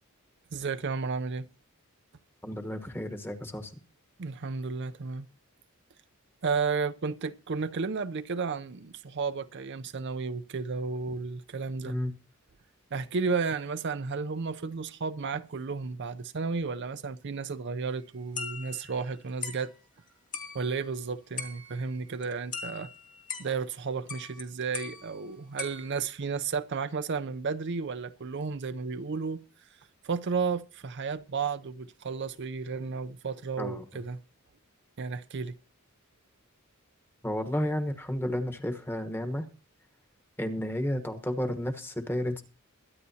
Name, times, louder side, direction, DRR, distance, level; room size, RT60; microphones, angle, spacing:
voice 1, 0.5-1.5 4.2-5.3 6.4-11.9 12.9-19.7 20.5-22.9 23.4-29.4 30.0-34.2 35.0-35.5, right 5 dB, 55° right, 0.5 m, -33 dB
voice 2, 2.4-3.7 11.8-12.1 33.6-33.8 37.2-39.5 40.4-42.4, left 1 dB, 10° left, 1.2 m, -32 dB
sound 1, 18.4-19.1 19.4-19.7 20.3-21.0 21.4-22.0 22.2-23.7 24.1-24.4 24.7-26.1, left 5 dB, 40° left, 1.9 m, -40 dB
22.5 x 9.8 x 2.8 m
head